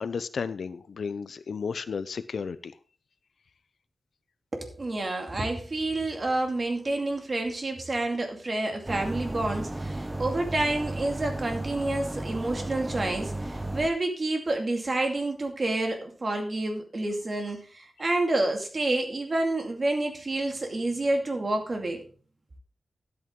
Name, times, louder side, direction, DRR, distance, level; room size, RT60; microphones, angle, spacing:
voice 1, 0.0-2.8, left 5 dB, 85° left, 0.6 m, -33 dB
voice 2, 4.5-22.0, right 2 dB, 45° right, 2.4 m, -29 dB
sound 1, 8.9-13.9, right 1 dB, 15° right, 0.9 m, -34 dB
12.5 x 8.4 x 3.7 m
wide cardioid pair, 110°, 0 cm